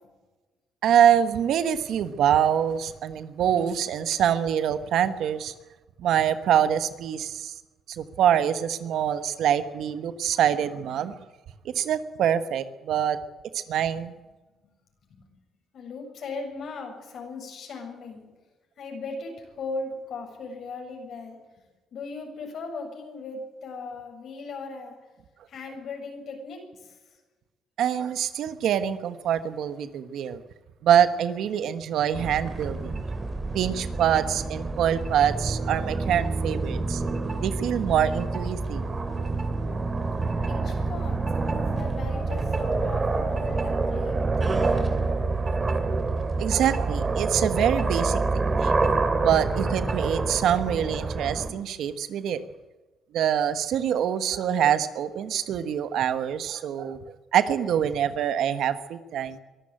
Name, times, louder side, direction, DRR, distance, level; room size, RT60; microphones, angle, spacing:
voice 1, 0.8-5.5 6.0-7.5 7.9-11.1 11.7-13.2 13.5-14.1 27.8-30.4 30.8-33.0 33.5-37.0 37.4-38.8 46.4-48.2 48.5-48.8 49.2-52.4 53.1-57.0 57.3-59.4, right 9 dB, 75° right, 11 dB, 1.3 m, -25 dB
voice 2, 15.7-18.3 18.8-21.4 21.9-25.0 25.5-27.2 40.5-41.2 41.5-45.2, left 3 dB, 65° left, 2 dB, 7.6 m, -38 dB
sound 1, 32.1-51.5, right 3 dB, 30° right, 2.9 m, -27 dB
23.0 x 13.0 x 9.0 m, 1.2 s
cardioid pair, 90°, 0 cm